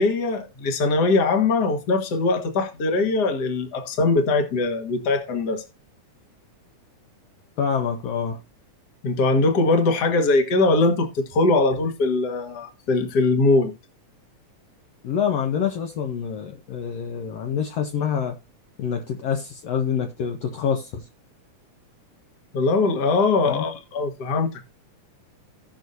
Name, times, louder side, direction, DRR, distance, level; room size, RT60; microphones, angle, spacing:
voice 1, 0.0-5.6 9.0-13.7 22.5-24.6, left 3 dB, 40° left, 1.6 m, -21 dB
voice 2, 7.6-8.4 15.0-18.4 18.8-21.0 23.5-23.6, left 7 dB, 65° left, 1.8 m, -26 dB
17.0 x 6.2 x 2.7 m
omnidirectional pair, 3.4 m